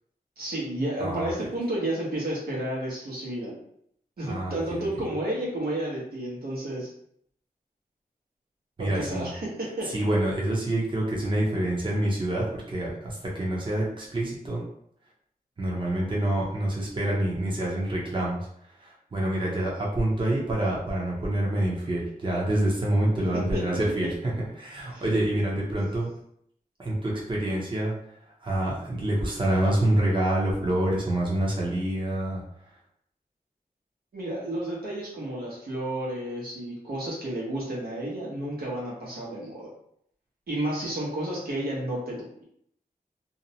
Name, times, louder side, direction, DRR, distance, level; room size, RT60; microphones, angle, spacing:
voice 1, 0.4-3.5 4.2-6.9 8.8-9.9 23.3-23.6 24.9-25.2 25.7-25.8 34.1-39.7 40.5-42.4, right 1 dB, 85° right, -5 dB, 1.0 m, -31 dB
voice 2, 1.0-1.3 4.2-5.0 8.8-9.3 9.9-14.6 15.6-18.4 18.8-26.1 26.8-27.9 28.4-32.4, right 1 dB, 35° right, -4 dB, 0.7 m, -27 dB
2.6 x 2.1 x 2.7 m, 0.68 s
wide cardioid pair, 95°, 15 cm